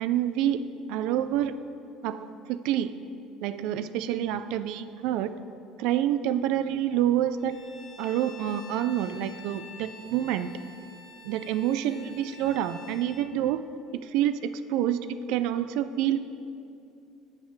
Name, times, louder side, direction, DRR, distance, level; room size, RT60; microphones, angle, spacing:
voice 1, 0.0-1.5 2.0-2.9 3.4-5.3 5.8-7.5 8.0-10.5 11.2-13.6 13.9-16.2, right 11 dB, 75° right, 12 dB, 0.3 m, -27 dB
Bowed string instrument, 7.4-13.3, left 3 dB, 65° left, 1.2 m, -48 dB
7.2 x 4.8 x 6.2 m, 2.6 s
supercardioid pair, 110°, 0 cm